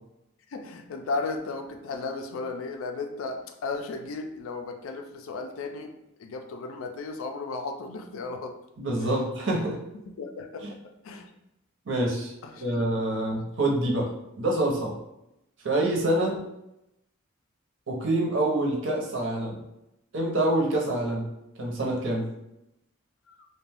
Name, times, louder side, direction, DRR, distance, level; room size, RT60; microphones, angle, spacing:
voice 1, 0.5-5.9 6.2-8.6 9.0-9.2 9.9-10.7 11.0-11.3 12.4-12.8 13.3-13.4 16.2-16.4 23.3-23.4, left 3 dB, 70° left, 5 dB, 0.4 m, -35 dB
voice 2, 8.8-9.8 10.6-10.7 11.9-14.1 14.4-15.0 15.6-16.4 17.9-19.6 20.1-21.3 21.6-22.3, right 1 dB, 60° right, -1 dB, 0.7 m, -26 dB
2.5 x 2.2 x 3.4 m, 0.86 s
head